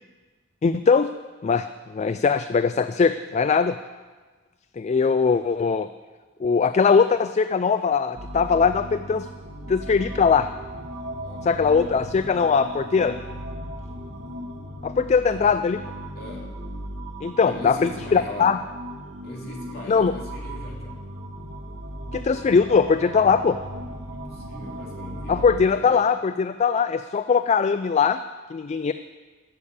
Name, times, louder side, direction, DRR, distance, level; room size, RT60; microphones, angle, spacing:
voice 1, 0.6-1.1 1.4-3.8 4.8-5.9 6.4-9.3 9.7-10.5 11.4-13.2 14.8-15.8 17.2-18.6 19.9-20.1 22.1-23.6 25.3-28.2 28.5-28.9, left 5 dB, 35° left, 11 dB, 0.3 m, -21 dB
sound 1, 8.1-25.6, equal, 90° right, 1.7 m, -37 dB
voice 2, 11.2-11.8 16.2-16.7 17.4-18.6 19.2-21.1 24.1-25.9, left 1 dB, 50° left, -2 dB, 3.0 m, -40 dB
14.0 x 6.7 x 8.4 m, 1.4 s
head